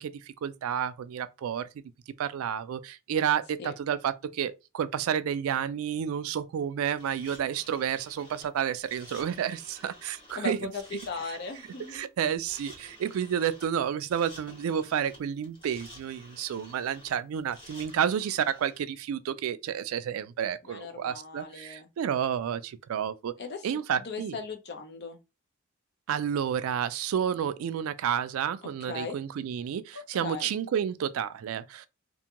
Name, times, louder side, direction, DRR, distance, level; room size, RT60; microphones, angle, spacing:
voice 1, 0.0-1.7 2.2-10.7 11.9-23.4 23.6-24.4 26.1-31.9, right 8 dB, 75° right, 0.3 m, -30 dB
sound 1, 6.9-18.8, left 1 dB, 25° left, 1.5 m, -51 dB
voice 2, 10.3-12.0 20.6-21.9 23.4-23.8 24.0-25.2 28.9-29.2 30.2-30.5, left 4 dB, 55° left, 0.6 m, -38 dB
2.5 x 2.2 x 2.9 m
head